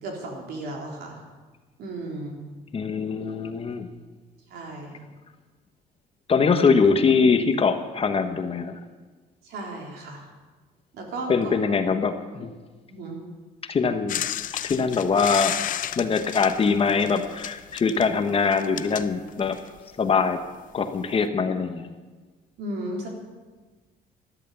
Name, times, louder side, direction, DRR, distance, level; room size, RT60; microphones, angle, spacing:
voice 1, 0.0-1.2 1.8-2.4 4.5-5.0 9.4-10.3 10.9-11.6 12.9-13.2 22.6-23.1, right 2 dB, 70° right, 0 dB, 3.8 m, -35 dB
voice 2, 2.7-3.9 6.3-8.8 11.3-12.5 13.6-14.2 14.6-15.6 16.0-19.6 20.0-20.4 20.7-21.9, left 5 dB, 35° left, 8 dB, 1.2 m, -23 dB
sound 1, 14.1-19.8 20.8-20.9, left 11 dB, 50° left, 0.6 m, -32 dB
13.5 x 12.5 x 7.0 m, 1.4 s
cardioid pair, 110°, 17 cm